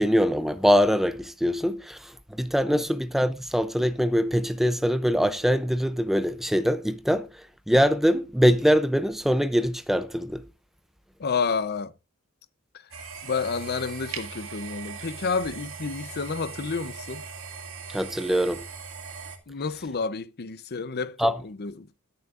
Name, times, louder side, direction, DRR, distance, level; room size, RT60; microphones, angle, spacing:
voice 1, 0.0-10.4 17.9-18.7 21.2-21.4, equal, ahead, 0.4 m, -23 dB
voice 2, 11.2-11.9 12.7-12.8 13.2-17.2 19.5-22.0, left 5 dB, 50° left, 0.7 m, -30 dB
sound 1, 12.9-19.4, right 5 dB, 65° right, 2.1 m, -39 dB
21.0 x 7.1 x 2.5 m
head